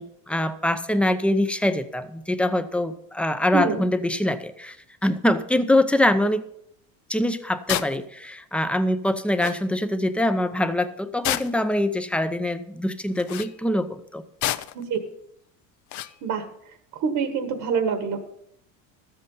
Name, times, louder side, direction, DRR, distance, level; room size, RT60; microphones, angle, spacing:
voice 1, 0.0-4.8 5.0-6.4 7.1-14.2, left 1 dB, 5° left, 10 dB, 0.6 m, -24 dB
voice 2, 3.5-3.8 14.7-15.0 16.2-16.4 16.9-18.2, right 6 dB, 65° right, 7 dB, 1.6 m, -25 dB
sound 1, 7.7-8.0 9.1-9.2 9.4-9.6 11.2-11.7 13.2-13.5 14.4-14.8 15.9-16.2, left 13 dB, 50° left, 0.6 m, -28 dB
13.0 x 7.9 x 5.5 m, 0.74 s
cardioid pair, 125°, 37 cm